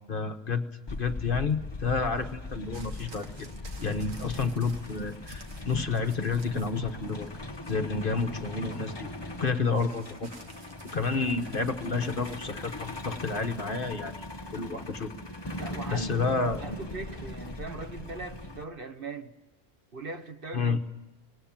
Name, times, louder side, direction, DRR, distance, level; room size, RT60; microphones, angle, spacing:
voice 1, 0.1-3.5 3.8-7.3 7.7-9.1 9.4-10.3 10.8-14.1 14.5-15.1 15.9-16.7 20.5-20.8, left 4 dB, 45° left, 1.2 m, -30 dB
Truck, 0.9-18.6, left 2 dB, 20° left, 1.1 m, -40 dB
sound 1, 2.7-6.8 7.1-7.7 9.8-12.4 13.3-13.4, right 3 dB, 90° right, 2.1 m, -51 dB
voice 2, 15.6-16.3 16.6-19.3 19.9-20.8, right 3 dB, 45° right, 1.3 m, -40 dB
24.5 x 20.0 x 7.3 m
omnidirectional pair, 1.3 m